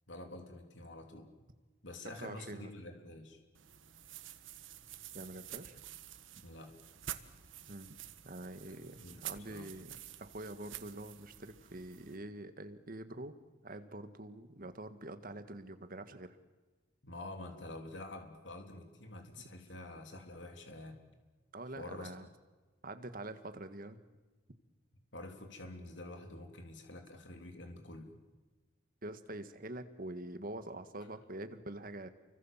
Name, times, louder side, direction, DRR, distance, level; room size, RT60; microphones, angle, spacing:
voice 1, 0.1-1.3 1.8-3.4 6.4-6.7 8.7-9.7 17.0-21.0 21.7-22.1 25.1-28.2, left 2 dB, 65° left, 4 dB, 3.4 m, -48 dB
voice 2, 2.1-2.7 5.1-5.8 7.7-8.0 8.2-13.4 13.6-16.4 21.5-22.3 22.8-24.0 29.0-32.1, right 1 dB, 45° right, 10 dB, 1.7 m, -45 dB
sound 1, 3.5-12.2, right 11 dB, 85° right, 1.5 m, -49 dB
29.5 x 24.5 x 7.4 m, 1.3 s
head